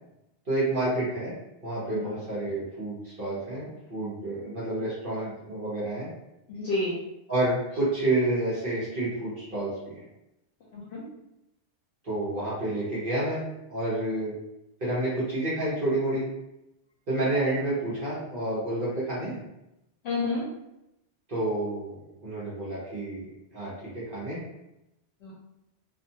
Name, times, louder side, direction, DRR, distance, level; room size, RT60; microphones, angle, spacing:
voice 1, 0.5-1.3 1.6-6.1 7.3-10.0 12.0-14.3 14.8-16.2 17.1-19.4 21.3-23.2 23.5-24.4, right 2 dB, 50° right, -9 dB, 1.1 m, -29 dB
voice 2, 6.5-6.9 10.7-11.0 20.0-20.4 25.2-25.3, left 2 dB, 70° left, -5 dB, 0.8 m, -29 dB
2.6 x 2.4 x 2.7 m, 0.89 s
omnidirectional pair, 1.2 m